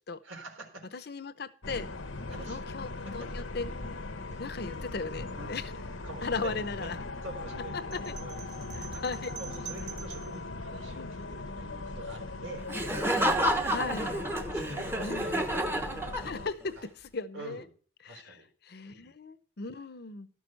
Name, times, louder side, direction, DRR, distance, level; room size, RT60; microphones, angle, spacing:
voice 1, 0.2-1.1 2.3-2.6 3.0-3.3 4.3-4.7 5.4-5.5 6.0-6.9 7.2-8.4 9.4-12.7 14.3-15.7 16.8-16.9 17.3-17.7 18.0-18.5 18.8-19.1, right 3 dB, 80° right, 3 dB, 3.7 m, -46 dB
voice 2, 1.1-1.9 2.5-3.7 4.4-5.7 6.2-7.0 8.1-8.2 8.8-9.3 10.9-11.1 13.1-13.3 13.6-14.2 15.0-15.3 16.1-16.7 17.1-17.6 18.0-18.3 18.6-20.3, left 4 dB, 55° left, 14 dB, 0.7 m, -37 dB
sound 1, 1.6-16.5, left 3 dB, 90° left, 1.1 m, -39 dB
sound 2, 7.9-10.4, right 8 dB, 55° right, 1.7 m, -45 dB
Laughter, 12.7-16.6, right 1 dB, 10° right, 0.9 m, -30 dB
12.5 x 6.3 x 6.3 m, 0.43 s
head